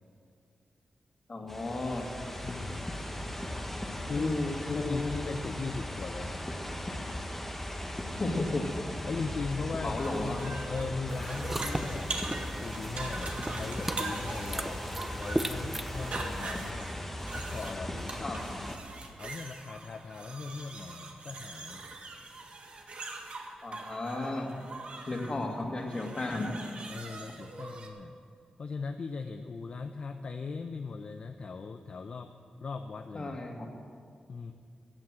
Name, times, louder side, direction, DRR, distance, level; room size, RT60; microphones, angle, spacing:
voice 1, 1.3-2.1 4.2-5.2 8.1-8.7 9.8-10.5 18.2-18.4 23.6-24.5 25.1-26.6 33.1-33.7, left 2 dB, 35° left, 1 dB, 2.2 m, -33 dB
sound 1, 1.5-18.8, left 1 dB, 10° left, 1.3 m, -38 dB
voice 2, 2.4-3.0 4.1-7.1 9.1-12.1 12.6-14.8 15.2-16.9 17.3-18.8 19.2-21.8 26.9-28.1 28.6-32.3 32.6-33.4 34.3-34.5, left 4 dB, 55° left, 6 dB, 0.6 m, -39 dB
sound 2, 10.0-27.9, right 3 dB, 55° right, 1.7 m, -42 dB
sound 3, 11.1-16.7, right 1 dB, 10° right, 0.6 m, -37 dB
15.0 x 8.7 x 7.5 m, 2.2 s
wide cardioid pair, 95°, 2 cm